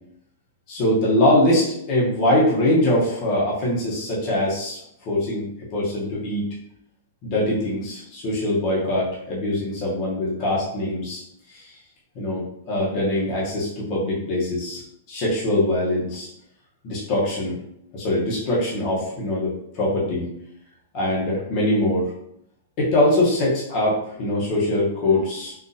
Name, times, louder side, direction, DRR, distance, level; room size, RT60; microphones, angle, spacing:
voice 1, 0.7-4.8 5.0-5.5 5.7-6.4 7.2-11.2 11.5-11.7 12.2-14.8 15.1-16.3 16.8-17.6 17.9-20.3 20.9-22.1 22.8-25.5, left 1 dB, 30° left, -6 dB, 0.9 m, -22 dB
3.9 x 2.4 x 2.7 m, 0.74 s
supercardioid pair, 170°, 0 cm